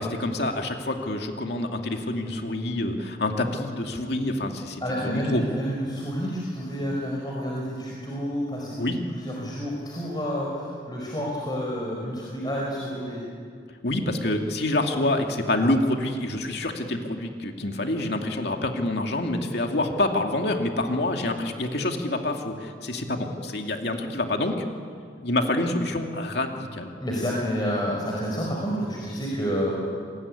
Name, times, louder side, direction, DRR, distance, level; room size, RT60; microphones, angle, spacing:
voice 1, 0.0-5.5 8.8-9.0 13.8-24.6 25.2-26.9, left 1 dB, 65° left, 3 dB, 2.4 m, -27 dB
voice 2, 4.8-13.2 27.0-29.8, equal, 25° left, -3 dB, 4.9 m, -29 dB
28.0 x 21.0 x 9.8 m, 2.2 s
head